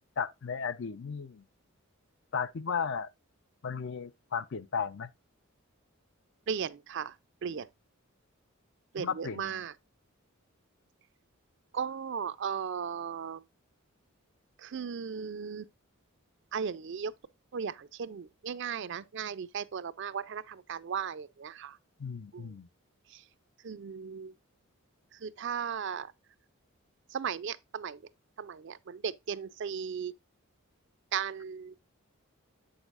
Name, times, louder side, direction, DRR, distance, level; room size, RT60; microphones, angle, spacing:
voice 1, 0.0-1.4 2.3-3.1 3.6-5.1 9.0-9.6 22.0-22.7, left 6 dB, 55° left, 0.5 m, -35 dB
voice 2, 6.5-7.1 7.4-7.7 8.9-9.7 11.7-13.4 14.6-15.7 16.5-17.1 17.5-21.8 22.3-22.6 23.1-23.2 23.6-24.3 25.1-26.1 27.1-28.0 28.4-30.1 31.1-31.8, right 7 dB, 55° right, 0.4 m, -36 dB
7.9 x 6.4 x 2.4 m
head